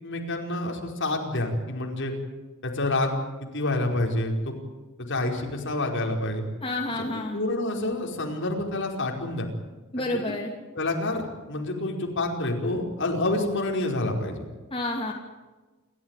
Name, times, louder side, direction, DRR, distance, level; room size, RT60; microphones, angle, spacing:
voice 1, 0.0-2.1 2.6-4.5 5.0-6.4 7.3-9.5 10.3-10.4 10.7-14.4, left 2 dB, 60° left, 2 dB, 5.0 m, -28 dB
voice 2, 6.6-7.4 9.9-10.5 14.7-15.1, left 2 dB, 25° left, 0 dB, 2.8 m, -29 dB
28.5 x 14.0 x 9.2 m, 1.2 s
head